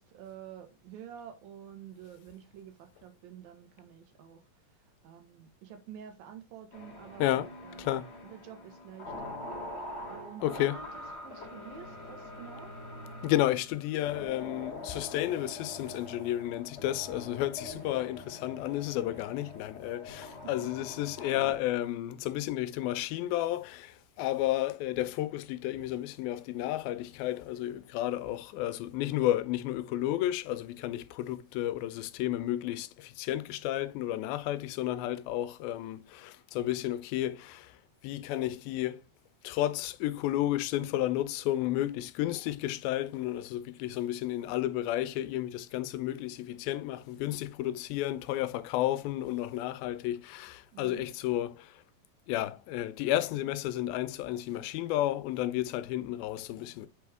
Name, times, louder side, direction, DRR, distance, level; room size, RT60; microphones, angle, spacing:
voice 1, 0.0-4.4 5.0-7.8 8.2-9.4 10.1-12.7 50.7-51.1, right 8 dB, 75° right, 3.0 m, -49 dB
sound 1, 6.7-21.5, left 2 dB, 20° left, 2.1 m, -44 dB
voice 2, 7.2-7.5 7.8-8.1 10.4-10.8 13.2-37.8 38.0-39.0 39.4-51.8 52.3-56.9, left 14 dB, 85° left, 2.4 m, -32 dB
8.5 x 4.4 x 3.5 m
omnidirectional pair, 4.2 m